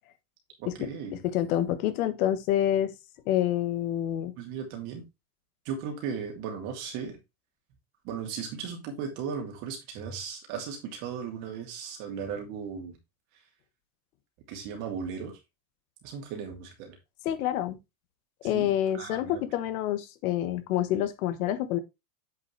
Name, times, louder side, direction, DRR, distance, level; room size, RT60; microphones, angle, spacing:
voice 1, 0.6-1.2 4.4-5.0 5.6-7.2 8.0-13.0 14.5-15.4 16.0-17.0 18.5-19.4, right 6 dB, 35° right, 2.8 m, -36 dB
voice 2, 1.3-2.9 3.2-4.3 17.2-17.8 18.4-21.8, left 11 dB, 60° left, 1.4 m, -27 dB
8.1 x 5.3 x 3.3 m
supercardioid pair, 175°, 48 cm